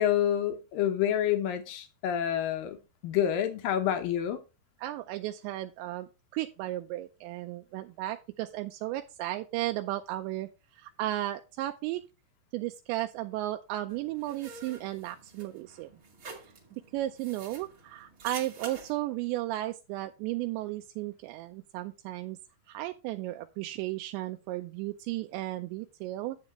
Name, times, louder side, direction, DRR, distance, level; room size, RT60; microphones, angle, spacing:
voice 1, 0.0-2.8 3.0-4.4, left 10 dB, 75° left, 2.1 m, -28 dB
voice 2, 4.8-12.0 12.5-15.9 16.9-22.4 22.7-26.4, right 15 dB, 85° right, 2.8 m, -34 dB
sound 1, 13.9-18.9, right 4 dB, 40° right, 2.1 m, -47 dB
10.5 x 7.4 x 3.1 m
omnidirectional pair, 5.1 m